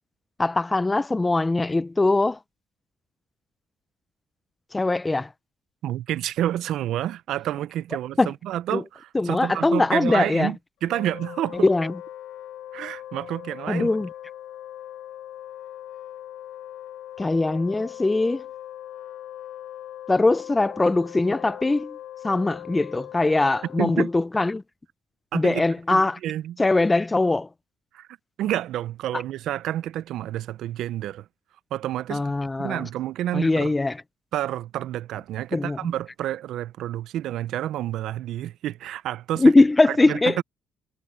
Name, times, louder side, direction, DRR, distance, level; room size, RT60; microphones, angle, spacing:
voice 1, 0.4-2.4 4.7-5.3 8.2-8.3 8.7-8.8 9.1-10.5 11.5-11.9 13.7-14.1 17.2-18.4 20.1-22.0 22.2-24.6 25.3-26.2 26.6-27.5 29.1-29.2 32.1-32.9 33.3-34.0 35.5-35.9 39.4-40.4, left 2 dB, 15° left, 0.4 m, -21 dB
voice 2, 5.8-11.7 12.7-13.9 23.8-24.1 25.3-25.6 25.9-26.6 27.9-28.1 28.4-31.3 31.7-32.2 32.6-33.7 34.3-39.5 39.9-40.4, right 12 dB, 75° right, 0.5 m, -29 dB
Wind instrument woodwind instrument, 10.8-24.2, left 12 dB, 80° left, 2.1 m, -40 dB
cardioid pair, 105°, 0 cm